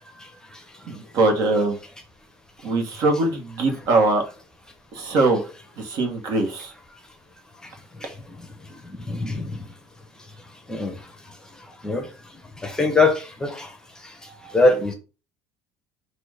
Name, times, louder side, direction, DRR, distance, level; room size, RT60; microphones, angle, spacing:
voice 1, 0.9-1.8 2.6-4.2 4.9-5.4 5.8-6.7, right 2 dB, 60° right, 3 dB, 1.3 m, -21 dB
voice 2, 9.1-9.6 10.7-10.9 11.8-12.0 12.6-13.7 14.5-14.9, left 3 dB, 10° left, 6 dB, 0.8 m, -21 dB
4.3 x 2.5 x 4.9 m, 0.35 s
cardioid pair, 130°, 7 cm